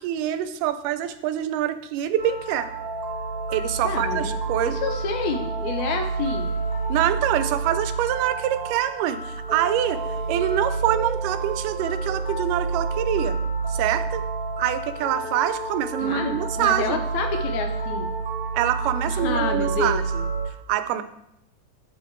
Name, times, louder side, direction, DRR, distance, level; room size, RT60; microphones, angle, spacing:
voice 1, 0.0-2.7 3.5-4.8 6.9-10.0 10.3-13.4 13.7-14.2 14.6-17.0 18.5-21.0, right 11 dB, 90° right, 11 dB, 2.2 m, -25 dB
sound 1, 2.2-20.5, right 3 dB, 55° right, 1.4 m, -29 dB
voice 2, 3.8-4.3 4.7-6.6 16.0-18.2 19.1-20.0, left 5 dB, 75° left, 4 dB, 1.9 m, -29 dB
6.5 x 6.4 x 4.4 m, 0.78 s
omnidirectional pair, 3.7 m